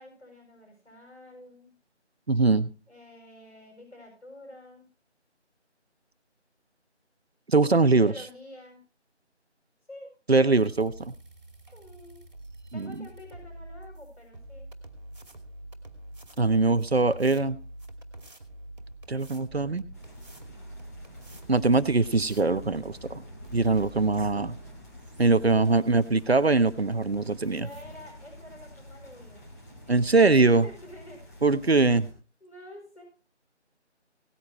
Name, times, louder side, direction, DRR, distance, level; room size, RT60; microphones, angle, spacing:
voice 1, 0.0-1.8 2.9-4.9 8.0-8.8 9.9-10.1 11.7-12.2 12.7-14.7 27.5-29.5 30.6-31.3 32.4-33.0, left 1 dB, 70° left, 2 dB, 7.3 m, -48 dB
voice 2, 2.3-2.7 7.5-8.1 10.3-11.1 12.7-12.9 16.4-17.6 19.1-19.8 21.5-23.2 23.5-24.6 25.2-27.6 29.9-30.7 31.4-32.1, right 3 dB, 60° right, 13 dB, 1.1 m, -22 dB
sound 1, 10.5-28.1, right 1 dB, 40° right, 2.4 m, -47 dB
sound 2, 19.9-32.1, left 1 dB, 15° left, 2.3 m, -47 dB
18.5 x 9.8 x 3.1 m, 0.34 s
figure-of-eight pair, 170°, 35 cm